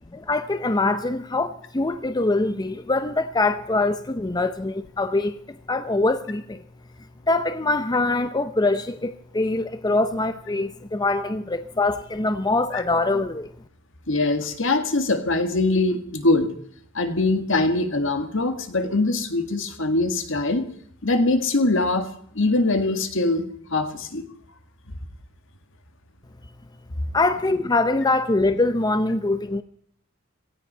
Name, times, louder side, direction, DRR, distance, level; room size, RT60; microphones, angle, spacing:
voice 1, 0.1-6.6 7.3-13.5 27.1-29.6, left 2 dB, 20° left, 0.6 m, -23 dB
voice 2, 14.1-16.5 16.9-20.7 21.0-23.4 23.7-24.2 24.9-25.0, left 2 dB, 70° left, 1.9 m, -22 dB
17.5 x 13.5 x 5.6 m
head